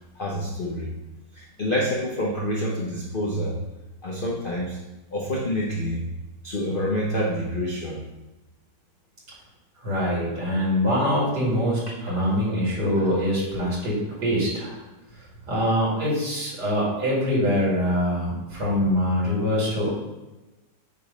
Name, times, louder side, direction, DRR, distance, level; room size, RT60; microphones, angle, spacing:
voice 1, 0.2-0.9 1.3-3.6 4.0-4.8 5.1-6.1 6.4-8.0 12.1-12.2 13.0-13.1, equal, 60° left, -2 dB, 0.5 m, -27 dB
voice 2, 9.8-14.8 15.5-19.9, equal, 65° right, -6 dB, 2.9 m, -24 dB
7.2 x 3.1 x 5.1 m, 1.1 s
omnidirectional pair, 1.9 m